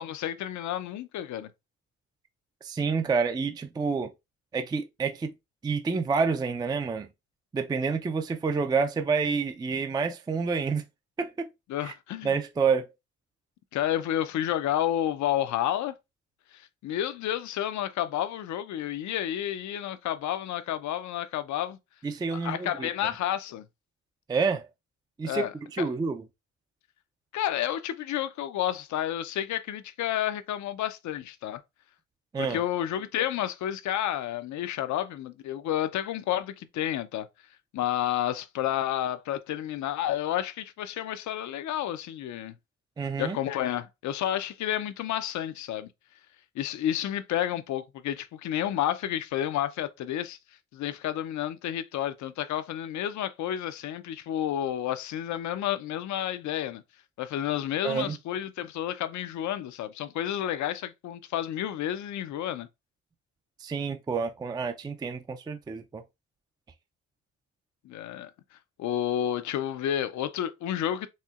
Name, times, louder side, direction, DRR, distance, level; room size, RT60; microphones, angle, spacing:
voice 1, 0.0-1.5 11.7-12.4 13.7-15.9 16.5-21.8 22.3-23.7 25.2-25.9 27.3-31.6 32.4-37.3 37.7-42.5 43.2-45.9 46.6-50.4 50.7-56.8 57.2-62.7 67.8-68.3 68.8-71.1, left 11 dB, 70° left, 0.5 m, -30 dB
voice 2, 2.6-4.1 4.5-5.3 5.6-7.1 7.5-10.8 11.2-11.5 11.8-11.9 12.2-12.9 22.0-22.9 24.3-24.7 25.2-26.2 32.3-32.6 43.0-43.4 57.8-58.2 63.6-66.0, right 5 dB, 15° right, 0.3 m, -28 dB
4.3 x 2.7 x 2.4 m
cardioid pair, 90°, 30 cm